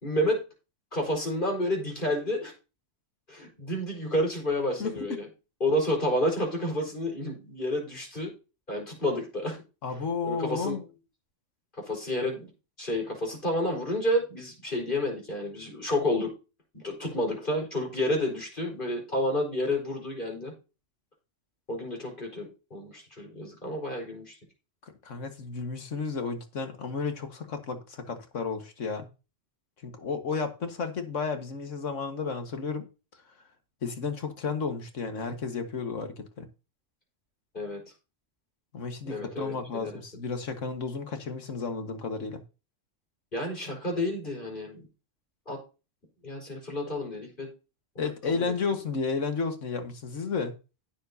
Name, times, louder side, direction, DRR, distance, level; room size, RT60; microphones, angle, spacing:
voice 1, 0.0-0.4 0.9-2.5 3.3-5.3 5.6-8.3 8.7-9.6 10.2-10.8 11.8-12.5 12.8-16.3 16.7-20.5 21.7-24.4 37.5-37.8 39.0-40.0 43.3-44.9 45.5-45.6 46.2-47.5 47.9-48.5, left 1 dB, 40° left, 0 dB, 5.0 m, -30 dB
voice 2, 9.8-10.8 25.0-29.1 29.8-32.9 33.8-36.5 38.7-42.4 48.0-50.5, left 4 dB, 85° left, 6 dB, 1.9 m, -32 dB
16.5 x 7.0 x 2.8 m, 0.31 s
omnidirectional pair, 1.3 m